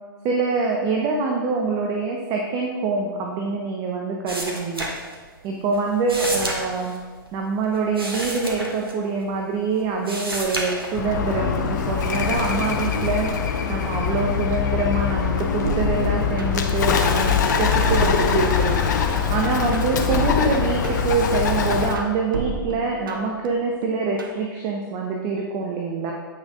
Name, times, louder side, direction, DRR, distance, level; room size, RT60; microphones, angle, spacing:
voice 1, 0.2-4.9 5.4-7.0 7.3-13.3 13.7-18.8 19.3-26.1, right 4 dB, 30° right, 0 dB, 0.8 m, -25 dB
sound 1, 4.3-5.5 5.7-9.5 9.8-11.3 11.8-12.4, right 1 dB, 85° right, 1.5 m, -31 dB
Bird, 11.0-22.0, left 6 dB, 50° left, 0.9 m, -23 dB
sound 2, 15.6-16.8 17.1-19.0 19.4-21.2 21.6-23.5 23.8-24.4, right 5 dB, 70° right, 1.0 m, -32 dB
8.9 x 6.1 x 3.7 m, 1.4 s
figure-of-eight pair, 110°, 12 cm